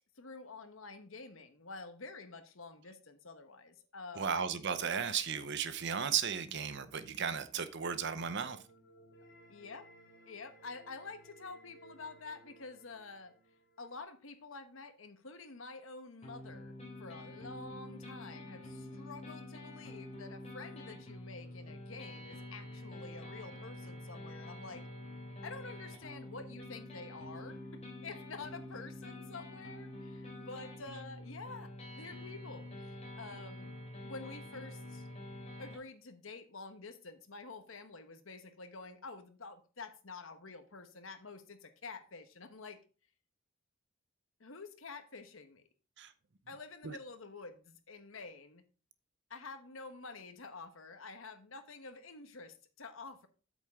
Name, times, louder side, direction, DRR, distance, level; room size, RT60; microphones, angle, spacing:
voice 1, 0.0-4.4 9.5-9.9 10.3-13.3 13.8-24.8 25.4-33.7 34.0-35.1 35.6-42.8 44.4-45.6 46.5-48.6 49.3-53.3, left 3 dB, 70° left, 1.2 m, -49 dB
voice 2, 4.2-8.6 46.0-46.1 46.8-47.0, right 7 dB, 60° right, 0.8 m, -35 dB
sound 1, 8.0-14.0, right 1 dB, 55° left, 2.7 m, -60 dB
sound 2, 16.2-35.8, left 1 dB, 30° left, 3.0 m, -47 dB
8.5 x 7.2 x 3.6 m
head